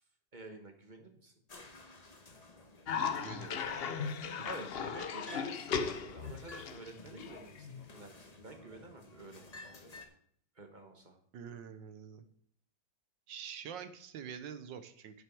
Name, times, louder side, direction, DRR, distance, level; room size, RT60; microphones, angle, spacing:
voice 1, 0.3-1.3 4.4-9.7 10.6-11.2, right 2 dB, 30° right, 4 dB, 1.3 m, -50 dB
sound 1, 1.5-10.1, left 2 dB, 25° left, 1.0 m, -54 dB
Cough, 2.9-7.9, left 6 dB, 85° left, 0.5 m, -37 dB
voice 2, 3.2-3.6 4.0-4.1 11.3-12.2 13.3-15.2, right 8 dB, 80° right, 10 dB, 1.6 m, -46 dB
10.5 x 7.9 x 4.6 m, 0.65 s
omnidirectional pair, 2.0 m